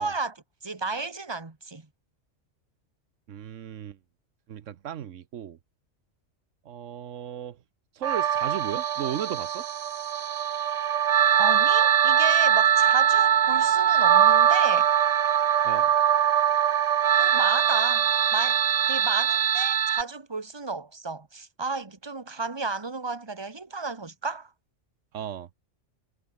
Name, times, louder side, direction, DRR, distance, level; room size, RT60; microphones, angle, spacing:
voice 1, 0.0-1.9 11.4-14.9 17.2-18.0 18.3-18.6 18.9-24.5, right 3 dB, 20° right, 1.6 m, -33 dB
voice 2, 3.3-4.0 4.5-5.6 6.6-7.6 7.9-9.6 15.6-15.9 25.1-25.5, right 10 dB, 85° right, 1.2 m, -35 dB
sound 1, 8.0-20.0, right 9 dB, 65° right, 0.4 m, -22 dB
omnidirectional pair, 1.2 m